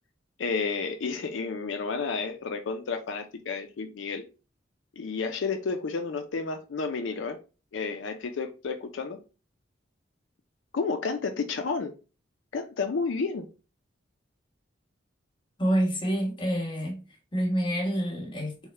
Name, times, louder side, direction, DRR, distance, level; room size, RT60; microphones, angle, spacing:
voice 1, 0.4-4.2 5.0-7.4 7.7-9.2 10.7-11.9 12.5-13.4, left 4 dB, 75° left, 0.5 m, -31 dB
voice 2, 15.6-17.0 17.3-18.6, equal, 25° left, 1.2 m, -27 dB
3.5 x 2.1 x 4.1 m
head